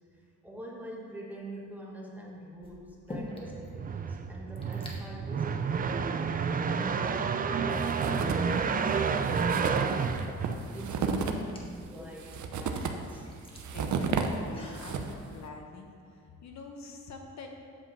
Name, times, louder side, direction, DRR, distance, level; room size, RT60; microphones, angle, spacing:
voice 1, 0.1-10.4 10.7-13.3, right 1 dB, 5° right, -3 dB, 1.3 m, -45 dB
sound 1, 1.4-1.8 2.6-3.7 4.0-4.1 4.3-5.0 5.8-5.9 6.5-7.4 9.1-9.2 9.9-14.9, left 1 dB, 15° left, 1.1 m, -47 dB
sound 2, 3.4-11.0, right 5 dB, 30° right, 0.3 m, -30 dB
sound 3, 7.7-8.6 8.9-9.0 9.2-15.3, right 5 dB, 70° right, 0.8 m, -33 dB
voice 2, 13.7-15.9 16.4-17.5, left 4 dB, 60° left, 2 dB, 1.0 m, -46 dB
8.4 x 5.1 x 7.1 m, 2.5 s
wide cardioid pair, 165°, 30 cm